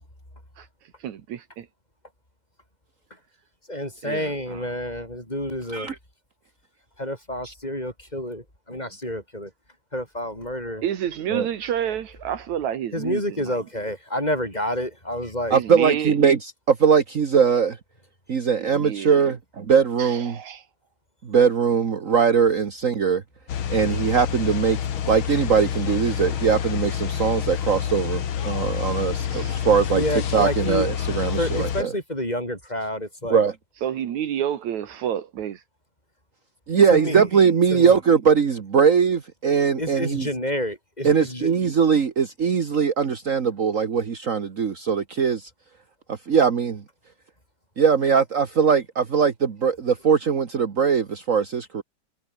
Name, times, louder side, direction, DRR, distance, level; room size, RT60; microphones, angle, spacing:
voice 1, 1.0-1.7 4.0-4.6 10.8-13.6 15.5-16.1 18.6-19.2 20.0-20.6 29.3-29.7 33.8-35.6, right 10 dB, 75° right, 2.9 m, -29 dB
voice 2, 3.7-5.9 7.0-9.5 9.9-10.8 12.9-15.6 29.9-30.9 31.4-33.4 36.9-37.3 37.7-38.0 39.8-41.5, left 1 dB, 10° left, 8.0 m, -29 dB
voice 3, 15.5-17.8 18.3-20.4 21.2-23.2 23.7-24.8 25.1-30.0 30.3-31.9 33.3-33.5 36.7-40.3 41.0-45.5 46.1-46.8 47.8-51.8, right 6 dB, 40° right, 1.2 m, -21 dB
sound 1, 23.5-31.8, left 9 dB, 50° left, 2.0 m, -28 dB
omnidirectional pair, 3.4 m